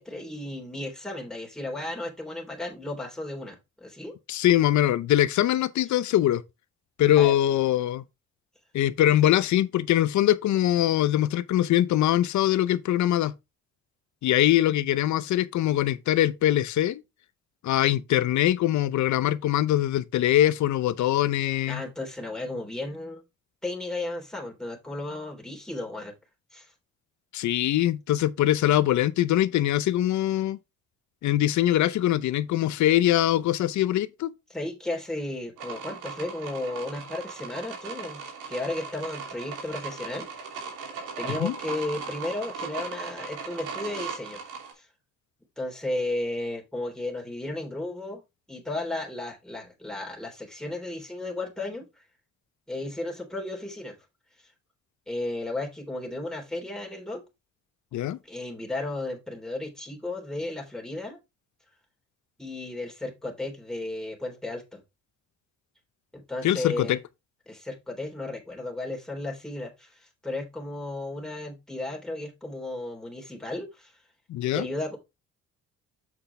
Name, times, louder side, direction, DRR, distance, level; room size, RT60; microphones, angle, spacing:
voice 1, 0.0-4.1 7.2-7.4 21.7-23.2 23.6-26.1 26.5-26.7 34.5-38.2 38.5-40.3 41.2-44.4 44.8-44.9 45.6-48.2 48.5-51.9 52.7-53.9 55.1-57.2 58.2-61.2 62.4-64.8 66.1-67.0 67.5-73.9 74.5-75.0, left 2 dB, ahead, 3.5 m, -34 dB
voice 2, 4.3-6.4 7.0-8.0 8.7-13.3 14.2-17.0 17.6-21.8 27.3-30.6 31.2-34.3 41.4-41.6 57.9-58.2 66.4-67.0 74.3-74.7, left 13 dB, 70° left, 0.7 m, -23 dB
sound 1, 35.6-44.7, right 5 dB, 85° right, 2.9 m, -38 dB
7.9 x 5.8 x 3.3 m
cardioid pair, 90°, 30 cm